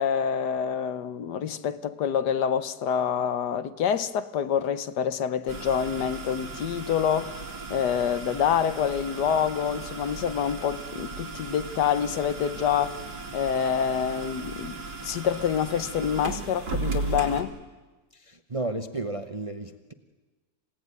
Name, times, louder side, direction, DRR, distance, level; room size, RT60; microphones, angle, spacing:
voice 1, 0.0-13.0 13.3-17.5, left 8 dB, 75° left, 1.5 m, -27 dB
sound 1, 5.5-17.4, right 3 dB, 85° right, 3.4 m, -36 dB
voice 2, 18.1-19.9, right 2 dB, 25° right, 0.7 m, -33 dB
27.5 x 17.0 x 9.6 m
omnidirectional pair, 1.8 m